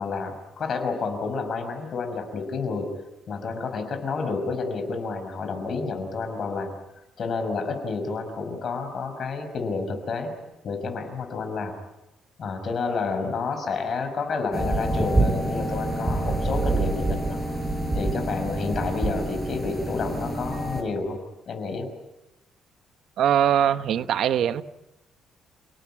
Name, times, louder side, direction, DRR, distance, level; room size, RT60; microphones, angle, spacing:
voice 1, 0.0-2.9 3.3-6.7 7.2-10.3 10.6-11.7 12.4-17.4 17.9-21.2 21.5-21.9, left 4 dB, 45° left, 6 dB, 5.9 m, -30 dB
sound 1, 14.5-20.8, right 2 dB, 10° right, 5.4 m, -26 dB
voice 2, 23.2-24.6, right 10 dB, 65° right, 12 dB, 1.1 m, -21 dB
29.5 x 18.5 x 9.0 m, 0.97 s
cardioid pair, 130°, 0 cm